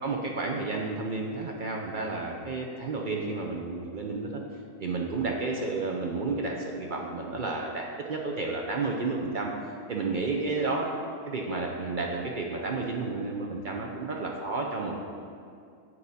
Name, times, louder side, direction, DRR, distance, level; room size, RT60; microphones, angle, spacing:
voice 1, 0.0-4.4 4.8-10.9 11.3-15.0, right 3 dB, 65° right, 0 dB, 0.5 m, -31 dB
8.4 x 4.7 x 4.1 m, 2.4 s
omnidirectional pair, 1.5 m